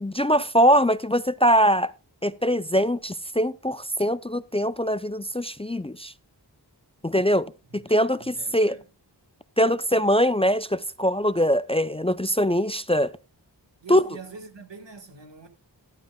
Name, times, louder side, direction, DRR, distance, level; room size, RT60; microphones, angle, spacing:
voice 1, 0.0-1.9 2.2-6.1 7.0-8.8 9.6-13.1 13.9-14.0, equal, 15° left, 0.4 m, -22 dB
voice 2, 7.7-8.9 13.8-15.5, right 4 dB, 85° right, 1.8 m, -44 dB
15.0 x 11.5 x 2.2 m
wide cardioid pair, 45°, 42 cm